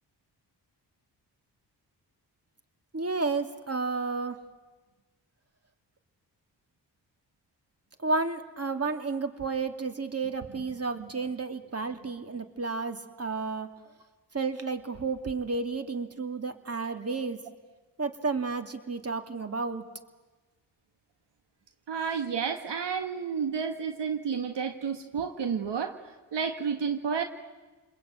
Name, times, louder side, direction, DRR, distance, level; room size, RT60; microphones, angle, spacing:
voice 1, 2.9-4.4 8.0-13.7 14.3-17.4 18.0-19.8, right 4 dB, 35° right, 7 dB, 2.7 m, -31 dB
voice 2, 21.9-26.0 26.3-27.2, right 6 dB, 75° right, 7 dB, 1.7 m, -31 dB
29.5 x 21.0 x 9.1 m, 1.2 s
cardioid pair, 55°, 43 cm